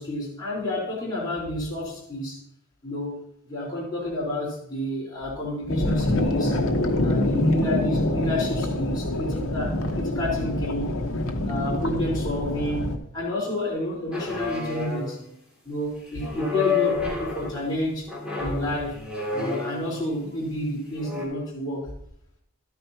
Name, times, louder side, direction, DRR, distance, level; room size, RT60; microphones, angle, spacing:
voice 1, 0.0-2.4 2.8-6.6 7.0-11.0 11.4-15.2 15.6-18.1 18.4-19.0 19.3-21.9, left 1 dB, 20° left, -8 dB, 4.1 m, -30 dB
sound 1, 5.7-13.0, left 1 dB, 60° left, 1.1 m, -25 dB
sound 2, 14.1-15.3 16.2-17.6 18.1-20.1 20.9-21.2, left 5 dB, 5° right, 2.5 m, -29 dB
12.5 x 9.6 x 2.9 m, 0.71 s
head